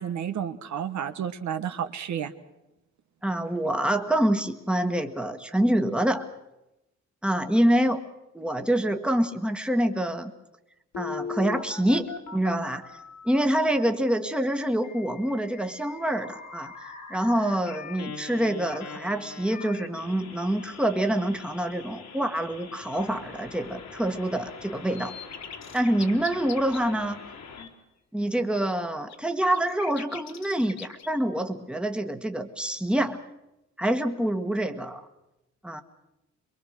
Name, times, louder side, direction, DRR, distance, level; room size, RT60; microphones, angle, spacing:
voice 1, 0.0-2.3, right 8 dB, 75° right, 8 dB, 1.2 m, -31 dB
voice 2, 3.2-6.3 7.2-8.0 8.3-10.3 11.0-12.9 13.2-25.1 25.7-27.2 28.1-33.2 33.8-35.0 35.6-35.8, right 1 dB, 5° right, 6 dB, 1.4 m, -26 dB
Telephone, 10.9-13.4 14.8-27.7, left 5 dB, 85° left, 3.0 m, -41 dB
sound 1, 24.9-26.8 28.7-28.8 29.1-31.1, left 7 dB, 65° left, 1.4 m, -42 dB
23.5 x 22.5 x 6.5 m, 0.93 s
cardioid pair, 100°, 29 cm